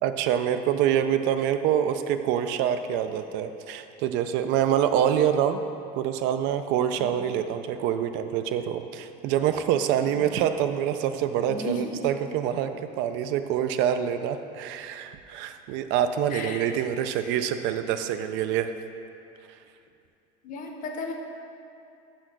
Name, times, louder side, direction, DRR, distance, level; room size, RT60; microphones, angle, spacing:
voice 1, 0.0-5.6 6.0-18.7, right 9 dB, 70° right, 9 dB, 0.4 m, -26 dB
voice 2, 11.5-11.9 16.3-16.6 20.4-21.1, left 2 dB, 45° left, 2 dB, 0.8 m, -34 dB
5.6 x 4.4 x 6.0 m, 2.6 s
cardioid pair, 150°, 19 cm